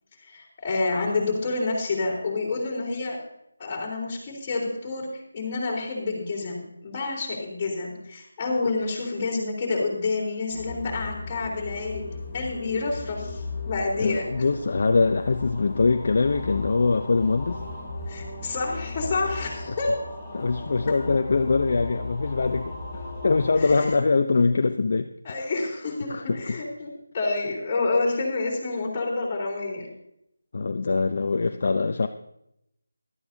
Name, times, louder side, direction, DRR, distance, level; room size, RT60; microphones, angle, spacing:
voice 1, 0.3-3.2 3.6-5.1 5.3-12.0 12.3-14.3 18.1-19.9 23.5-23.9 25.2-29.9, left 3 dB, 25° left, -4 dB, 3.6 m, -28 dB
sound 1, 10.5-23.9, left 3 dB, 5° left, 3.7 m, -36 dB
voice 2, 14.0-17.6 19.7-19.8 20.3-22.7 23.2-25.5 26.1-26.6 30.5-32.1, left 4 dB, 50° left, 7 dB, 0.5 m, -23 dB
16.0 x 12.5 x 2.8 m, 0.79 s
figure-of-eight pair, 160°, 0 cm